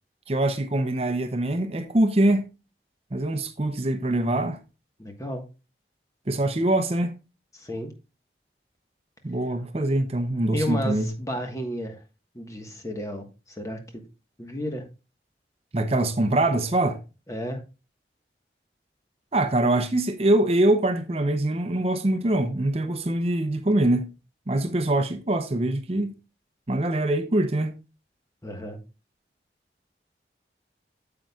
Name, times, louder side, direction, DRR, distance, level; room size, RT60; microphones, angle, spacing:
voice 1, 0.3-2.4 3.1-4.6 6.3-7.2 9.2-11.1 15.7-17.0 19.3-24.1 24.5-26.1 26.7-27.8, right 1 dB, 35° right, 0.6 m, -23 dB
voice 2, 5.0-5.4 7.5-7.9 10.5-12.0 12.3-14.0 14.4-14.9 17.3-17.6 28.4-28.8, equal, 20° left, 1.3 m, -32 dB
9.5 x 7.5 x 2.3 m
head